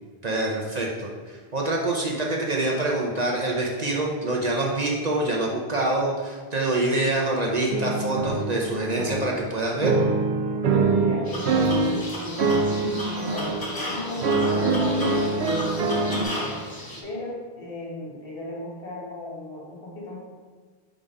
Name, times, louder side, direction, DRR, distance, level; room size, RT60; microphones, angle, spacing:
voice 1, 0.2-9.9, right 2 dB, 45° right, -2 dB, 0.8 m, -26 dB
sound 1, 7.7-9.5 9.8-12.1 12.4-13.6 14.2-16.2, right 3 dB, 80° right, 0.9 m, -24 dB
voice 2, 10.9-16.6 17.0-20.2, left 1 dB, 60° left, -5 dB, 1.7 m, -35 dB
sound 2, 11.3-17.0, left 1 dB, 25° left, 0.7 m, -34 dB
5.1 x 3.6 x 5.3 m, 1.5 s
omnidirectional pair, 1.1 m